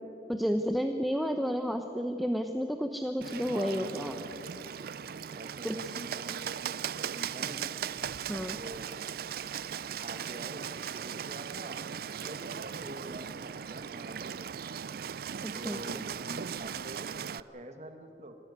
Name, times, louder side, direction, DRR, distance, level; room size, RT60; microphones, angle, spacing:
voice 1, 0.3-4.1 5.6-5.9 8.3-8.6 15.4-15.8, equal, ahead, 6 dB, 0.8 m, -31 dB
Bird, 3.2-17.4, right 8 dB, 55° right, 0.4 m, -38 dB
voice 2, 3.4-4.5 5.3-7.7 8.5-8.9 9.9-11.8 12.2-14.9 15.5-18.3, right 1 dB, 40° right, 7 dB, 1.5 m, -46 dB
25.0 x 16.0 x 9.5 m, 2.9 s
head